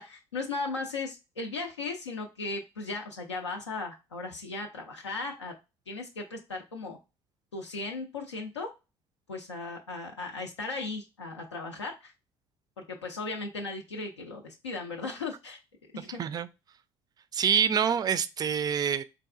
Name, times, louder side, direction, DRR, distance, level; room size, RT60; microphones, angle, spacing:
voice 1, 0.0-5.5 5.9-7.0 7.5-8.7 9.3-12.1 12.8-15.6 15.9-16.2, left 3 dB, 85° left, 0.4 m, -37 dB
voice 2, 16.0-16.5 17.3-19.0, right 7 dB, 25° right, 0.3 m, -26 dB
3.9 x 2.4 x 2.4 m
figure-of-eight pair, 55°, 14 cm